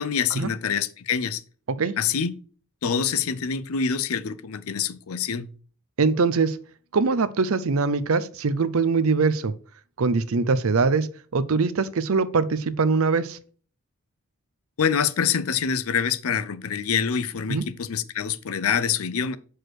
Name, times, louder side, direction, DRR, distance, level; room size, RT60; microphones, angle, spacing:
voice 1, 0.0-1.4 2.0-2.4 2.8-5.5 14.8-19.4, left 7 dB, 85° left, 0.6 m, -26 dB
voice 2, 6.0-6.6 6.9-9.5 10.0-11.1 11.3-13.4 17.5-17.6, right 4 dB, 80° right, 0.6 m, -22 dB
6.2 x 4.7 x 4.7 m
head